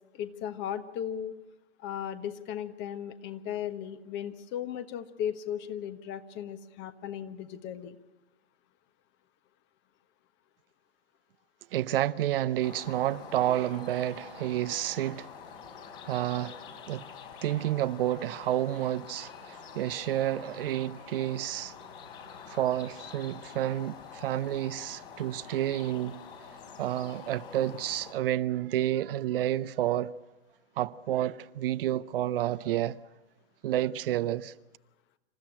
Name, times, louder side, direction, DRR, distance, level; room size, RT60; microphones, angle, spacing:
voice 1, 0.1-1.3 1.8-8.0, left 9 dB, 35° left, 1.4 m, -36 dB
voice 2, 11.7-15.3 16.0-16.6 16.9-17.1 17.4-21.7 22.5-26.2 26.8-30.1 30.8-33.0 33.6-34.5, right 13 dB, 60° right, 0.7 m, -30 dB
sound 1, 12.6-28.1, left 6 dB, 55° left, 3.6 m, -47 dB
27.0 x 14.0 x 8.8 m
hypercardioid pair, 105°, 32 cm